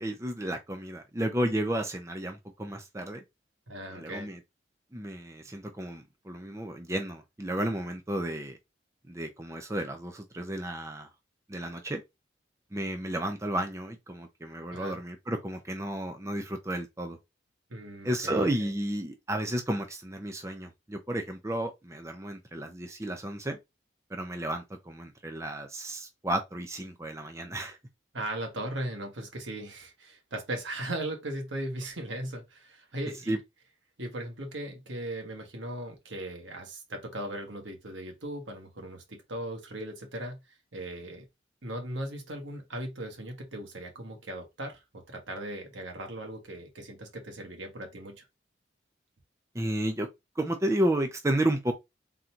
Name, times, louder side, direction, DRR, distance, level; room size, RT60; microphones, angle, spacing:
voice 1, 0.0-3.2 3.9-4.4 4.9-8.6 9.1-11.1 11.5-12.0 12.7-17.2 18.0-23.6 24.1-27.8 33.3-33.4 49.5-50.1 50.4-51.7, right 1 dB, 15° right, 0.5 m, -32 dB
voice 2, 3.7-4.3 14.7-15.0 17.7-18.7 28.1-33.4 34.0-41.3 41.6-48.3, right 1 dB, 80° right, 1.4 m, -38 dB
3.8 x 2.7 x 4.4 m
head